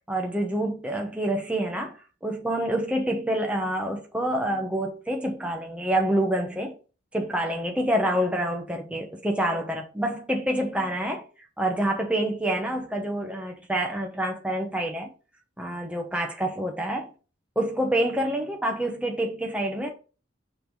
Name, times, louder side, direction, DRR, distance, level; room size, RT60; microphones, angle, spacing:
voice 1, 0.1-6.7 7.1-11.2 11.6-15.1 15.6-17.1 17.6-19.9, right 1 dB, 5° right, 0.9 m, -27 dB
5.9 x 3.5 x 4.7 m
head